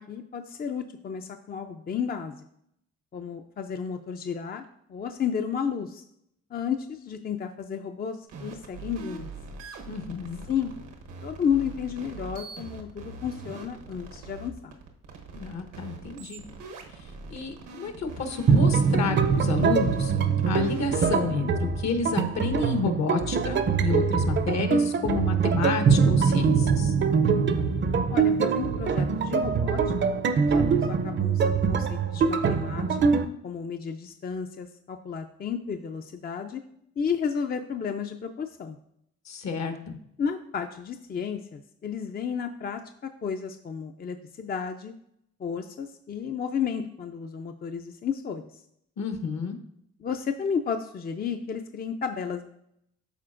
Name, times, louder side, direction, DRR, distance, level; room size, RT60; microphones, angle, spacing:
voice 1, 0.0-2.3 3.1-4.6 4.9-6.0 6.5-9.3 10.5-10.7 11.2-14.8 28.1-30.1 30.5-32.8 33.1-36.6 37.0-38.8 40.2-44.9 45.4-48.6 50.0-52.4, left 7 dB, 30° left, 6 dB, 0.5 m, -32 dB
sound 1, 8.3-21.3, right 3 dB, 90° right, 1.1 m, -43 dB
voice 2, 9.9-10.4 15.3-16.4 16.9-20.1 20.5-26.9 39.2-39.9 49.0-49.6, left 4 dB, 65° left, 7 dB, 1.2 m, -30 dB
sound 2, 18.5-33.2, right 5 dB, 40° right, 0.5 m, -23 dB
12.5 x 4.2 x 2.5 m, 0.74 s
cardioid pair, 90°, 30 cm